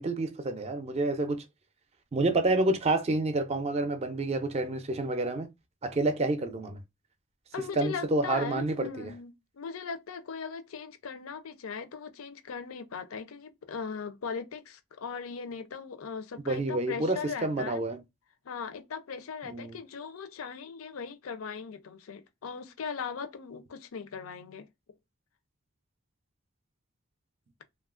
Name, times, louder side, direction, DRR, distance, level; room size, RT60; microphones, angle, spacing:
voice 1, 0.0-1.4 2.1-5.5 5.8-6.8 7.8-9.1 16.5-18.0 19.5-19.8, right 2 dB, 30° right, 0.4 m, -28 dB
voice 2, 7.5-17.8 18.4-24.7, left 5 dB, 90° left, 0.5 m, -39 dB
2.9 x 2.3 x 2.4 m
head